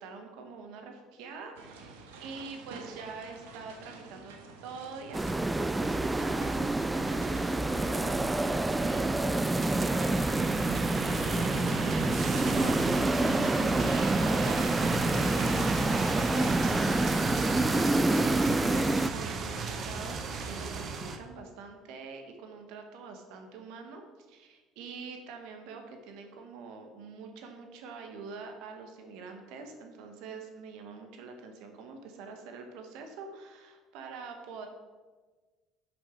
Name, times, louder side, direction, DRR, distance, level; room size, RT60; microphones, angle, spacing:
voice 1, 0.0-4.3 4.6-10.3 11.2-13.6 13.8-34.7, right 4 dB, 70° right, 4 dB, 1.2 m, -45 dB
sound 1, 1.5-20.9, right 4 dB, 90° right, 0.9 m, -49 dB
sound 2, 5.1-19.1, right 2 dB, 10° right, 0.3 m, -27 dB
sound 3, 6.3-21.2, right 4 dB, 45° right, 0.8 m, -36 dB
6.2 x 5.3 x 5.0 m, 1.3 s
supercardioid pair, 80°, 0 cm